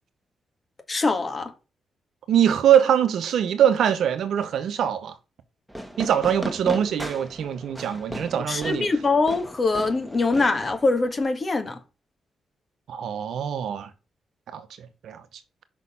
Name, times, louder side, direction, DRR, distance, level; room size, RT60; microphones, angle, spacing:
voice 1, 0.9-1.5 8.5-11.8, left 3 dB, 40° left, 1.7 m, -23 dB
voice 2, 2.3-5.1 6.0-8.9 12.9-13.9 14.5-15.2, right 9 dB, 75° right, 0.9 m, -23 dB
Fireworks, 5.7-11.2, right 1 dB, 5° right, 1.6 m, -37 dB
6.0 x 4.2 x 5.6 m
supercardioid pair, 55°, 0 cm